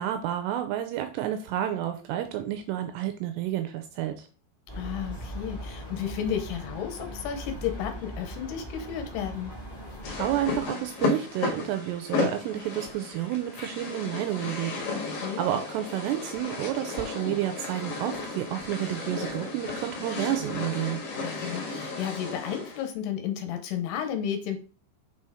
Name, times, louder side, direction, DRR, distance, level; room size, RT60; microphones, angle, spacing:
voice 1, 0.0-4.3 10.2-14.7 15.0-21.0, right 12 dB, 85° right, 8 dB, 2.7 m, -30 dB
sound 1, 4.7-10.6, equal, 10° left, 1.9 m, -39 dB
voice 2, 4.8-9.5 15.2-15.4 21.2-24.6, left 9 dB, 75° left, 6 dB, 2.8 m, -33 dB
sound 2, 10.0-22.9, left 3 dB, 60° left, 2.8 m, -34 dB
6.2 x 4.4 x 4.9 m, 0.38 s
omnidirectional pair, 5.0 m